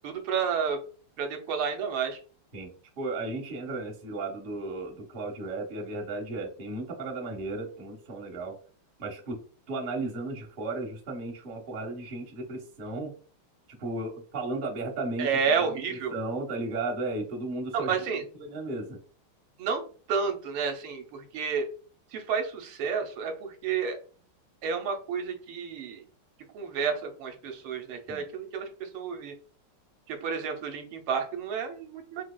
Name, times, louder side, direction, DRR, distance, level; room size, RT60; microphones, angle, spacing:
voice 1, 0.0-0.8 1.2-2.2 15.2-16.1 17.7-18.2 19.6-19.8 20.1-21.7 22.1-24.0 24.6-26.0 26.5-29.3 30.1-32.2, right 6 dB, 80° right, 5 dB, 1.4 m, -30 dB
voice 2, 3.0-8.5 9.0-9.4 9.7-13.1 13.8-15.4 15.9-18.0 18.3-19.0 28.1-28.2, right 2 dB, 40° right, -1 dB, 0.7 m, -34 dB
4.6 x 2.7 x 2.2 m, 0.40 s
omnidirectional pair, 2.4 m